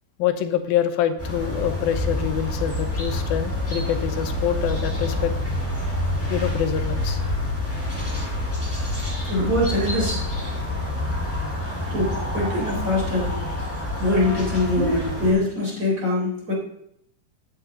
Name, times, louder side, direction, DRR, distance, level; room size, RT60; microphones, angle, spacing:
voice 1, 0.2-5.3 6.3-7.2, left 10 dB, 75° left, 9 dB, 2.6 m, -25 dB
sound 1, 1.2-15.3, left 1 dB, 5° left, 4.0 m, -27 dB
voice 2, 9.2-10.2 11.9-13.3 14.0-16.5, left 1 dB, 20° right, -4 dB, 4.1 m, -23 dB
14.0 x 9.0 x 3.9 m, 0.73 s
omnidirectional pair, 4.4 m